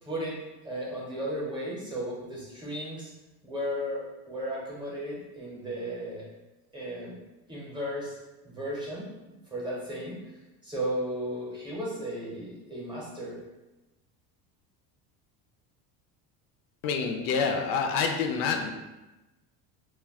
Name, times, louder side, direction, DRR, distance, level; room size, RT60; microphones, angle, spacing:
voice 1, 0.0-0.4 0.6-3.1 3.4-6.3 6.7-7.2 7.5-8.2 8.4-9.1 9.5-10.2 10.6-13.4, equal, 10° right, -6 dB, 0.7 m, -35 dB
voice 2, 16.8-18.7, left 5 dB, 80° left, 4 dB, 0.5 m, -27 dB
2.3 x 2.2 x 3.4 m, 1.0 s
cardioid pair, 145°, 39 cm